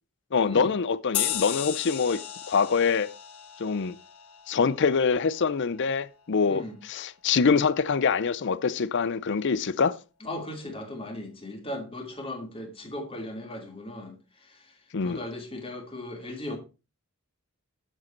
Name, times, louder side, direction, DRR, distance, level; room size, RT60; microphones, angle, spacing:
voice 1, 0.3-2.2 2.5-3.1 3.6-4.0 4.5-10.0 14.9-15.2, left 5 dB, 55° left, 0.5 m, -25 dB
sound 1, 1.1-6.0, left 11 dB, 75° left, 1.1 m, -35 dB
voice 2, 6.5-6.8 10.2-14.8 15.0-16.6, left 1 dB, 25° left, 2.6 m, -37 dB
8.9 x 7.7 x 4.5 m
head